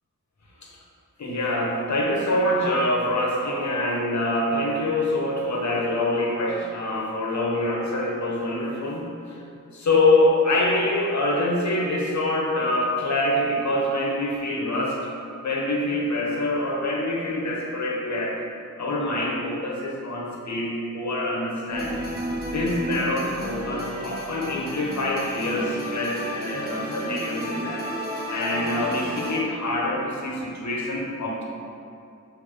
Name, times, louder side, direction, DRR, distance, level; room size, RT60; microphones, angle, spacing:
voice 1, 1.2-9.4 9.7-15.0 15.4-18.4 18.8-22.0 22.5-27.8 28.3-31.4, left 1 dB, 65° left, -2 dB, 1.2 m, -25 dB
sound 1, 21.7-29.4, equal, 30° right, 1.0 m, -32 dB
7.2 x 3.5 x 3.7 m, 2.7 s
wide cardioid pair, 110°, 31 cm